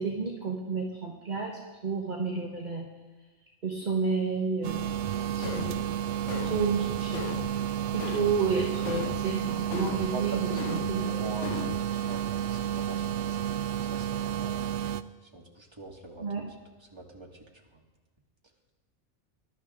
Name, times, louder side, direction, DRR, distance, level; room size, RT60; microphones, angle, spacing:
voice 1, 0.0-2.9 3.6-4.9 5.4-5.8 6.3-7.2 7.9-11.0 16.2-16.4, right 5 dB, 40° right, -1 dB, 1.4 m, -31 dB
sound 1, 4.6-15.0, right 10 dB, 75° right, 0.9 m, -31 dB
sound 2, 4.9-5.0 5.4-5.9 6.3-6.7 7.1-7.6 8.0-8.4 8.9-9.3 9.7-10.1 10.6-11.0 11.4-11.9, left 10 dB, 90° left, 0.9 m, -38 dB
voice 2, 10.1-14.9 15.2-17.8, right 2 dB, 20° right, 0 dB, 1.9 m, -43 dB
21.0 x 12.0 x 3.7 m, 1.2 s
omnidirectional pair, 1.2 m